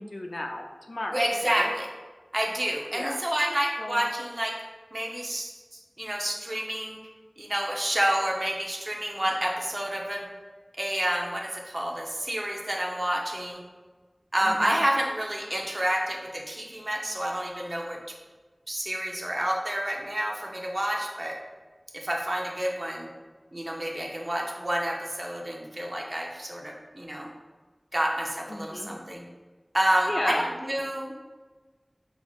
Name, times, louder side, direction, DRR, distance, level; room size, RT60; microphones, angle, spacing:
voice 1, 0.0-1.8 2.9-3.2 3.8-4.1 14.4-14.8 28.5-28.9 30.1-30.4, left 1 dB, 65° left, 3 dB, 0.4 m, -33 dB
voice 2, 1.1-1.9 2.3-4.6 4.9-7.0 7.4-10.3 10.8-13.6 14.3-18.0 18.7-21.4 21.9-23.1 23.5-27.3 27.9-29.2 29.7-31.2, right 1 dB, 45° right, -1 dB, 0.6 m, -29 dB
5.4 x 3.0 x 2.3 m, 1.3 s
wide cardioid pair, 50°, 0 cm